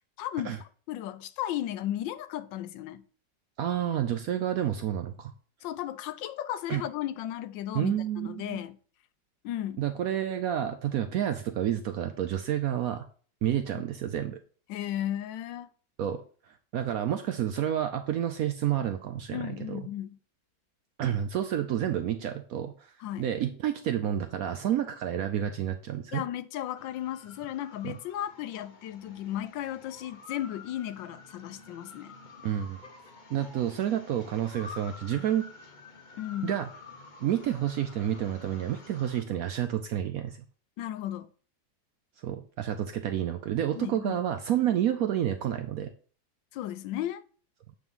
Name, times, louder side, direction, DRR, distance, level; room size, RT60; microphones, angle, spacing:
voice 1, 0.2-3.0 5.6-8.8 9.4-9.8 13.7-13.8 14.7-15.7 19.3-20.2 23.0-23.3 26.1-32.1 36.2-36.5 40.8-41.3 43.8-44.2 46.5-47.2, left 12 dB, 85° left, 1.3 m, -35 dB
voice 2, 3.6-5.3 6.7-6.8 7.7-8.6 9.8-13.1 13.4-14.4 16.0-16.2 16.5-19.9 21.0-22.9 23.2-26.2 27.8-27.9 32.4-32.8 33.3-35.5 36.4-36.7 37.2-40.4 42.2-45.9, right 10 dB, 70° right, 0.8 m, -29 dB
sound 1, 26.7-39.2, left 4 dB, 45° left, 0.6 m, -50 dB
7.8 x 3.1 x 5.4 m
omnidirectional pair, 2.0 m